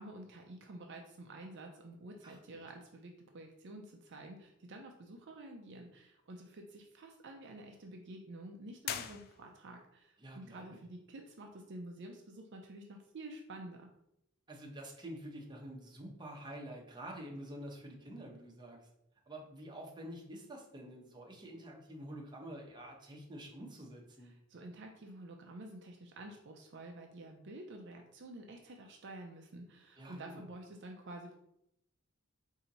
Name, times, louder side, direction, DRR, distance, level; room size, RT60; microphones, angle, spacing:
voice 1, 0.0-13.9 24.2-31.4, right 1 dB, 55° right, 2 dB, 0.5 m, -50 dB
voice 2, 2.2-2.6 10.2-10.8 14.5-18.9 19.3-24.3 30.0-30.4, right 1 dB, 20° right, -1 dB, 0.8 m, -48 dB
sound 1, 8.8-9.9, left 9 dB, 45° left, 0.3 m, -42 dB
4.4 x 2.7 x 3.9 m, 0.78 s
head